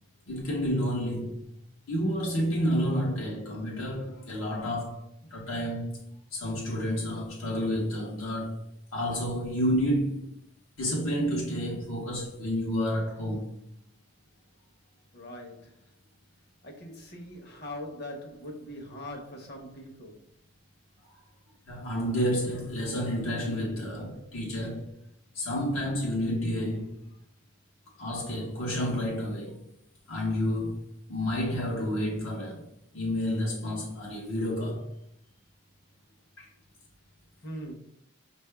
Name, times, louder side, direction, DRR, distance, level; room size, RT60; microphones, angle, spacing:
voice 1, 0.3-1.4 1.9-5.0 5.3-6.0 6.3-8.6 8.9-10.3 10.8-13.5 21.7-24.9 25.3-26.9 28.0-29.5 30.1-30.8 31.1-32.6 32.9-34.9 36.4-36.5, equal, 75° left, 1.1 m, -30 dB
voice 2, 15.1-15.7 16.6-20.2 37.4-37.7, left 1 dB, 50° left, 1.0 m, -41 dB
5.4 x 2.7 x 3.4 m
head